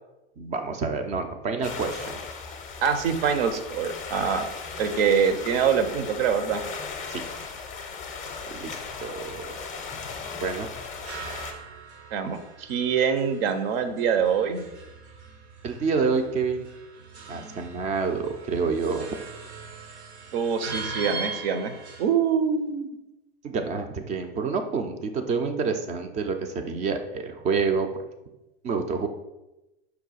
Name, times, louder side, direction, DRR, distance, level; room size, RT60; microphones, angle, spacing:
voice 1, 0.4-2.2 7.1-7.2 8.5-9.6 10.4-10.7 15.6-16.7 17.3-19.1 23.4-27.9 28.6-29.1, right 5 dB, 20° right, 6 dB, 0.4 m, -28 dB
sound 1, 1.6-11.5, left 5 dB, 25° left, 0.6 m, -37 dB
voice 2, 2.8-4.5 4.8-6.6 12.1-14.6 20.3-21.7 22.0-22.9, right 7 dB, 60° right, 8 dB, 0.6 m, -24 dB
sound 2, 10.7-22.0, right 4 dB, 90° right, 0.9 m, -40 dB
5.5 x 2.2 x 4.0 m, 0.97 s
hypercardioid pair, 115°, 32 cm